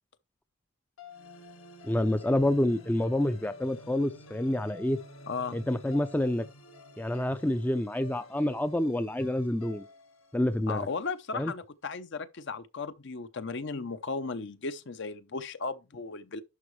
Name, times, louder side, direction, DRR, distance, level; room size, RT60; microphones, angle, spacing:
sound 1, 1.0-11.2, left 2 dB, 75° left, 1.9 m, -50 dB
voice 1, 1.8-5.0 5.5-6.4 7.0-9.9 10.3-10.9 11.3-11.5, left 1 dB, 10° left, 0.4 m, -28 dB
voice 2, 5.3-5.6 10.7-16.4, left 4 dB, 55° left, 0.7 m, -36 dB
11.5 x 4.7 x 3.2 m
head